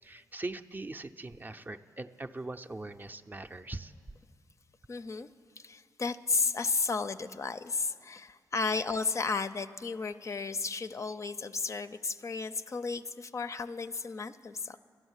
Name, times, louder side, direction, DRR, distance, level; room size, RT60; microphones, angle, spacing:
voice 1, 0.0-3.9, right 2 dB, 25° right, 8 dB, 0.4 m, -41 dB
voice 2, 4.9-5.3 5.6-14.8, left 4 dB, 40° left, 11 dB, 0.4 m, -33 dB
11.5 x 10.5 x 8.1 m, 2.1 s
cardioid pair, 65°, 8 cm